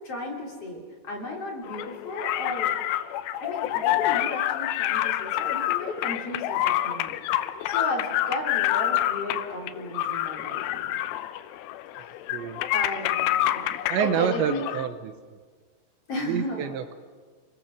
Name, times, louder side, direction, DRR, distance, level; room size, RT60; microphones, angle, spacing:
voice 1, 0.0-2.8 3.4-7.1 7.6-11.0 12.7-14.7 16.1-16.7, left 1 dB, 35° left, -1 dB, 3.9 m, -34 dB
sound 1, 1.6-14.9, left 13 dB, 85° left, 3.3 m, -27 dB
voice 2, 13.9-15.1 16.3-16.9, right 8 dB, 80° right, 9 dB, 3.2 m, -27 dB
28.0 x 20.0 x 7.6 m, 1.5 s
omnidirectional pair, 5.5 m